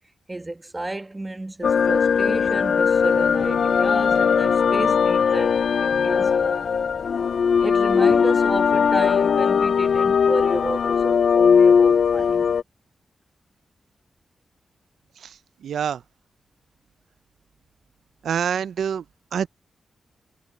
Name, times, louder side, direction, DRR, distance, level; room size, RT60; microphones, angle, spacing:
voice 1, 0.3-6.7 7.6-12.5, right 2 dB, 15° right, 1.3 m, -32 dB
sound 1, 1.6-12.6, left 6 dB, 65° left, 0.3 m, -19 dB
voice 2, 15.2-16.0 18.2-19.0 19.3-19.5, right 8 dB, 85° right, 0.4 m, -26 dB
wide cardioid pair, 105°, 0 cm